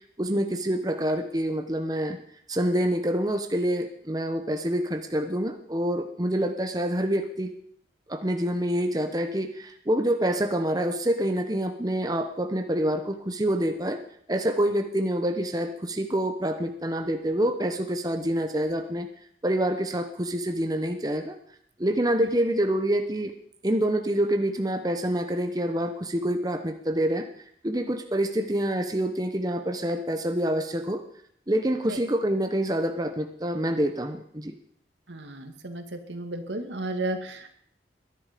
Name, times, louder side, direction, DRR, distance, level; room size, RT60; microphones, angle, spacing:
voice 1, 0.2-2.2 2.5-7.5 8.1-14.0 14.3-19.1 19.4-21.4 21.8-23.3 23.6-27.3 27.6-31.0 31.5-34.5, right 1 dB, 20° right, 6 dB, 1.0 m, -26 dB
voice 2, 35.1-35.8 36.1-37.5, right 2 dB, 80° right, 6 dB, 2.1 m, -33 dB
21.5 x 11.0 x 5.2 m, 0.65 s
head